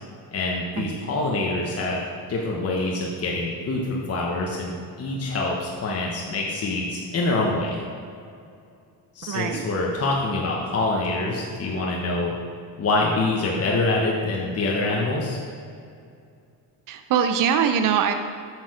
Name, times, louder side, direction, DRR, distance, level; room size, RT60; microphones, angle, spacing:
voice 1, 0.3-2.0 2.3-7.8 9.1-12.3 12.8-15.4, left 2 dB, 35° left, -2 dB, 1.0 m, -25 dB
voice 2, 9.2-9.6 16.9-18.1, right 7 dB, 50° right, 7 dB, 0.6 m, -22 dB
8.6 x 6.5 x 4.9 m, 2.4 s
cardioid pair, 145°, 42 cm